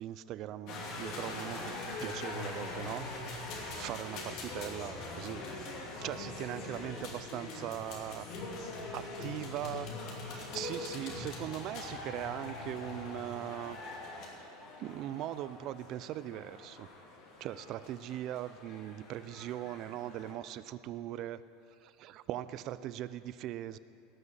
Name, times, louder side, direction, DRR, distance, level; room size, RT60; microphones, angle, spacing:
voice 1, 0.0-1.7 2.0-3.1 3.3-5.4 6.0-8.3 8.9-9.9 10.2-13.8 14.1-14.2 14.8-16.9 17.4-21.4 21.8-23.8, right 13 dB, 50° right, 15 dB, 0.4 m, -40 dB
sound 1, 0.7-20.3, left 2 dB, 55° left, 2.7 m, -43 dB
18.5 x 6.2 x 7.4 m, 2.7 s
supercardioid pair, 120°, 0 cm